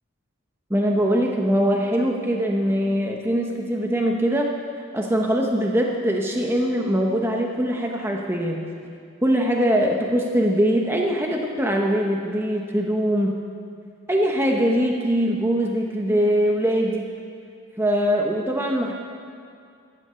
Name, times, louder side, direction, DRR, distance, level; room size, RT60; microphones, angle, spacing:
voice 1, 0.7-4.5 4.9-8.6 9.2-13.3 14.1-17.1 17.8-18.9, equal, 10° right, 0 dB, 1.0 m, -22 dB
16.5 x 12.0 x 6.9 m, 2.3 s
head